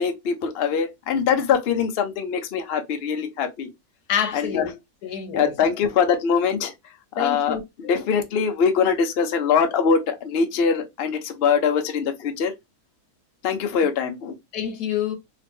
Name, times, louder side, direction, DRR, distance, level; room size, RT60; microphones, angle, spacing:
voice 1, 0.0-3.7 4.3-4.6 5.3-6.7 7.2-12.5 13.4-14.3, left 6 dB, 55° left, 0.7 m, -23 dB
voice 2, 4.1-4.7 5.0-5.5 7.2-7.9 14.5-15.2, left 9 dB, 80° left, 1.3 m, -27 dB
3.0 x 2.8 x 3.4 m
omnidirectional pair, 1.7 m